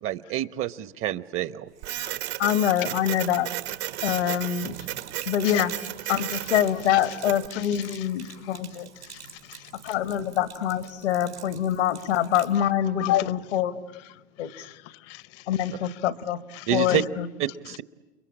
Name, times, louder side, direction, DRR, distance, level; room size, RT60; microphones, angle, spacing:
voice 1, 0.0-1.7 16.7-17.0 17.4-17.8, right 12 dB, 40° right, 1.0 m, -28 dB
Sink (filling or washing), 1.7-12.6, right 10 dB, 85° right, 3.9 m, -48 dB
Printer, 1.8-7.5, right 14 dB, 65° right, 1.5 m, -34 dB
voice 2, 2.4-3.5 4.0-4.8 5.3-5.7 6.1-8.9 9.8-13.8 14.4-14.6 15.5-16.4 16.7-17.3, left 10 dB, 80° left, 1.4 m, -25 dB
voice 3, 7.5-7.8 9.1-9.9 13.0-13.3 14.4-15.4 16.5-17.0, left 15 dB, 50° left, 0.8 m, -32 dB
30.0 x 22.5 x 8.7 m
hypercardioid pair, 90°, 33 cm